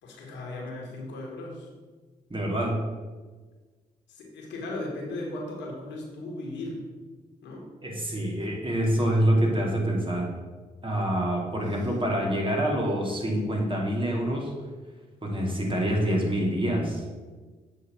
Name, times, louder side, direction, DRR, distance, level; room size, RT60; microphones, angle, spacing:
voice 1, 0.0-1.7 4.1-6.8 7.4-7.7, left 2 dB, 75° left, -2 dB, 1.8 m, -37 dB
voice 2, 2.3-2.8 7.8-10.3 10.8-14.5 15.2-17.0, right 1 dB, 30° right, -2 dB, 2.6 m, -26 dB
7.5 x 3.9 x 6.4 m, 1.4 s
hypercardioid pair, 45°, 19 cm